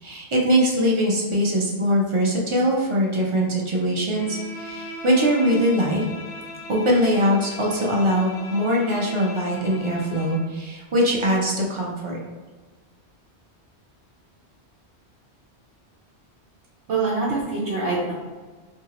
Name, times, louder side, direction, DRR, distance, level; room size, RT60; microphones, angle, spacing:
voice 1, 0.0-6.0 6.7-12.2, equal, 35° right, -3 dB, 0.5 m, -22 dB
Bowed string instrument, 4.1-10.5, left 2 dB, 75° left, 0.8 m, -39 dB
voice 2, 16.9-18.1, right 3 dB, 80° right, -7 dB, 0.9 m, -24 dB
2.8 x 2.7 x 2.9 m, 1.4 s
omnidirectional pair, 1.1 m